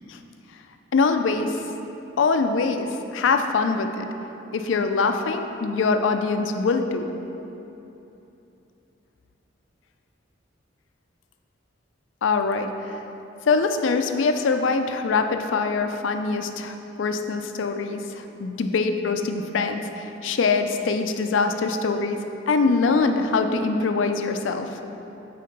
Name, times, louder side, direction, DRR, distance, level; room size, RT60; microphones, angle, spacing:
voice 1, 0.9-1.6 2.2-4.1 4.5-7.1 12.2-13.0 13.4-22.2 22.5-24.7, left 4 dB, 85° left, 7 dB, 0.4 m, -23 dB
6.6 x 4.3 x 5.2 m, 2.9 s
head